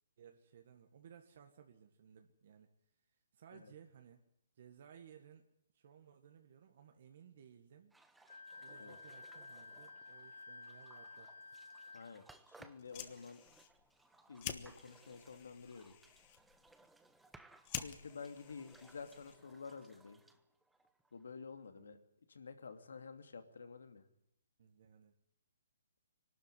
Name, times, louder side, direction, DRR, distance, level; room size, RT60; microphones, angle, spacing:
voice 1, 0.2-2.7 3.3-4.2 4.5-5.5 5.7-7.9 8.6-11.6 21.8-22.0 24.6-25.1, right 8 dB, 45° right, 5 dB, 1.7 m, -60 dB
sound 1, 7.9-21.4, right 2 dB, 5° right, 0.8 m, -64 dB
Wind instrument woodwind instrument, 8.3-12.1, left 4 dB, 55° left, 2.2 m, -53 dB
voice 2, 11.9-13.4 14.3-16.0 17.8-20.2 21.1-22.0 22.3-24.0, left 5 dB, 80° left, 7 dB, 2.7 m, -50 dB
Fire, 12.7-19.6, left 11 dB, 30° left, 1.3 m, -50 dB
23.0 x 12.5 x 10.0 m, 0.77 s
hypercardioid pair, 165°, 0 cm